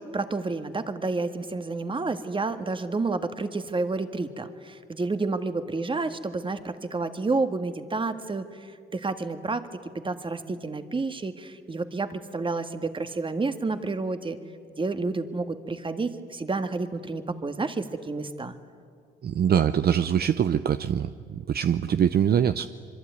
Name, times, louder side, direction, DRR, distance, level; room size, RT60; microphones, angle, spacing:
voice 1, 0.0-9.7 10.0-14.4 14.8-18.6, right 3 dB, 25° right, 9 dB, 1.8 m, -30 dB
voice 2, 19.2-22.7, right 9 dB, 50° right, 11 dB, 0.7 m, -23 dB
25.5 x 23.5 x 9.5 m, 2.1 s
cardioid pair, 90°, 20 cm